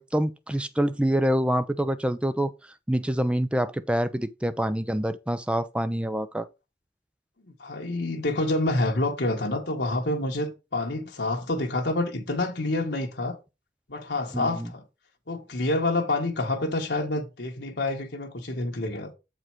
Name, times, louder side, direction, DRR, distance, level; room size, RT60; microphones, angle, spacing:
voice 1, 0.0-2.5 2.9-6.5 14.3-14.7, right 1 dB, 5° right, 0.4 m, -26 dB
voice 2, 7.6-13.4 13.9-14.8 15.3-19.1, left 2 dB, 80° left, 1.5 m, -28 dB
7.4 x 4.9 x 4.6 m
head